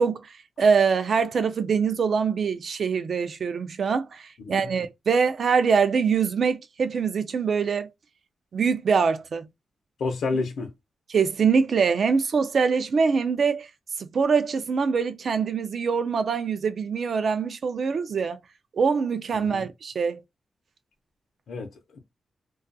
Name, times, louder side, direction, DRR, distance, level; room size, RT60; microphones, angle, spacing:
voice 1, 0.0-7.9 8.5-9.5 11.1-13.7 14.1-18.4 18.7-20.2, right 5 dB, 55° right, 0.3 m, -24 dB
voice 2, 10.0-10.7 19.3-19.7 21.5-22.0, left 3 dB, 80° left, 0.6 m, -30 dB
2.3 x 2.3 x 2.5 m
wide cardioid pair, 165°, 0 cm